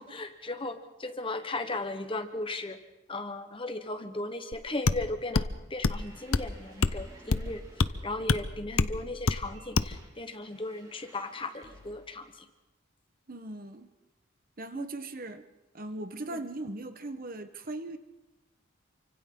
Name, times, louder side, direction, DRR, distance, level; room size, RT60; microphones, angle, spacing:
voice 1, 0.0-2.8 3.1-7.6 8.0-12.2 14.7-14.9, left 2 dB, 25° left, 8 dB, 1.2 m, -36 dB
sound 1, 4.5-4.6 4.9-5.0 5.3-5.5 5.8-6.0 6.3-6.5 6.8-7.0 7.3-7.5 7.8-7.9 8.3-8.4 8.8-8.9 9.3-9.4 9.8-9.9, left 4 dB, 85° left, 0.7 m, -25 dB
sound 2, 5.8-12.2, equal, 20° right, 4.7 m, -51 dB
voice 2, 13.3-13.9 14.6-15.4 15.7-18.0, right 2 dB, 45° right, 9 dB, 1.2 m, -39 dB
28.5 x 25.0 x 3.9 m, 1.0 s
head